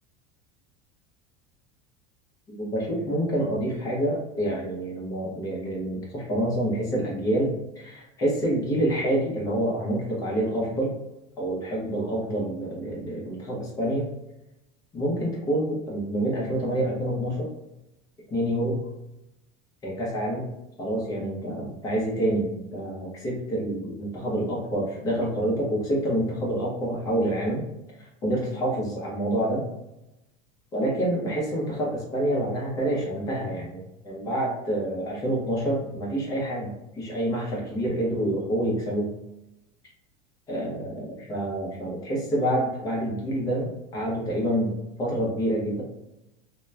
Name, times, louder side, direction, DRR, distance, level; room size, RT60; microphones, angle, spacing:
voice 1, 2.6-11.0 11.4-14.1 14.9-17.5 18.3-18.8 19.8-20.5 20.8-27.6 28.0-29.6 30.7-39.1 40.5-45.8, right 1 dB, 20° left, -3 dB, 0.7 m, -27 dB
2.9 x 2.1 x 2.3 m, 0.92 s
supercardioid pair, 165°, 18 cm